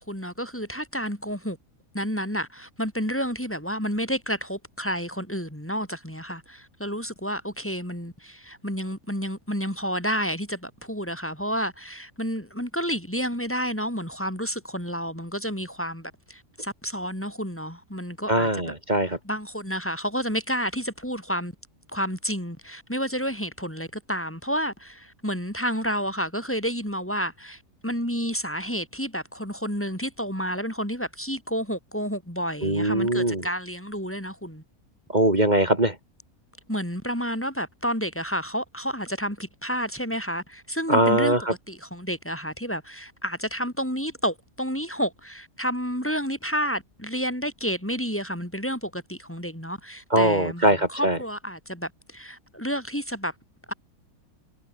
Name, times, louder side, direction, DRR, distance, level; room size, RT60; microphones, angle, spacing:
voice 1, 0.0-1.6 1.9-18.6 19.2-21.5 21.9-34.6 36.7-53.3 53.7-53.8, equal, 10° left, 4.9 m, -30 dB
voice 2, 18.3-19.2 32.6-33.4 35.1-36.0 40.9-41.4 50.1-51.2, right 1 dB, 30° right, 3.9 m, -21 dB
omnidirectional pair, 1.5 m